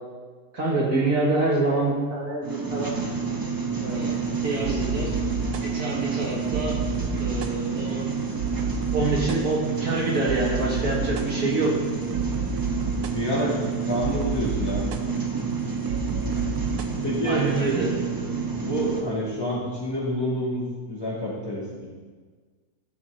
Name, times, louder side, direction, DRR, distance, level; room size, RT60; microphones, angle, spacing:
voice 1, 0.5-2.9 3.8-5.1 5.6-6.8 7.2-8.1 8.9-11.7 17.2-17.9, right 2 dB, 55° right, -3 dB, 1.8 m, -26 dB
sound 1, 2.4-19.0, right 5 dB, 25° right, 0.5 m, -29 dB
sound 2, 3.8-20.1, right 3 dB, 75° right, 1.2 m, -33 dB
voice 2, 13.1-13.6 13.8-14.8 17.0-17.5 18.6-21.9, equal, 15° left, -7 dB, 2.1 m, -28 dB
12.0 x 6.0 x 3.8 m, 1.5 s
omnidirectional pair, 1.8 m